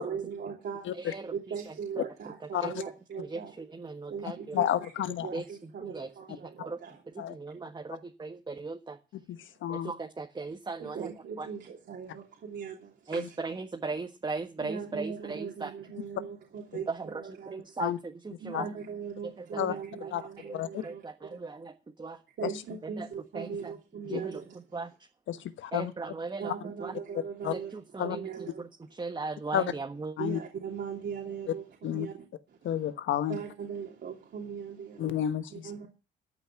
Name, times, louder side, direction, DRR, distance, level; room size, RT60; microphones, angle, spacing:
voice 1, 0.0-0.9 1.3-3.5 3.8-4.9 5.2-7.0 10.8-13.4 14.6-17.7 18.4-21.5 22.4-24.8 25.4-25.5 26.4-28.7 30.2-32.9 33.3-35.2 35.5-35.9, right 6 dB, 60° right, 3.1 m, -40 dB
voice 2, 1.0-1.3 2.6-2.7 3.3-4.6 5.3-6.8 7.1-9.0 9.7-11.1 11.4-11.5 13.1-15.7 16.9-18.7 19.4-20.1 20.8-22.2 22.8-23.1 23.3-23.7 24.1-24.4 24.7-24.9 25.7-26.9 27.5-28.3 28.6-28.7 29.0-30.1, right 3 dB, 20° right, 1.4 m, -38 dB
voice 3, 4.5-5.3 7.2-7.3 9.3-9.9 13.2-13.3 17.8-18.0 18.5-18.7 19.6-19.7 20.1-20.2 20.5-20.8 22.4-22.5 24.1-24.2 25.3-25.9 27.1-27.5 28.0-28.2 29.5-29.6 30.2-30.4 31.8-32.1 32.6-33.4 35.0-35.7, left 10 dB, 75° left, 1.2 m, -31 dB
13.5 x 5.9 x 9.1 m
cardioid pair, 90°, 20 cm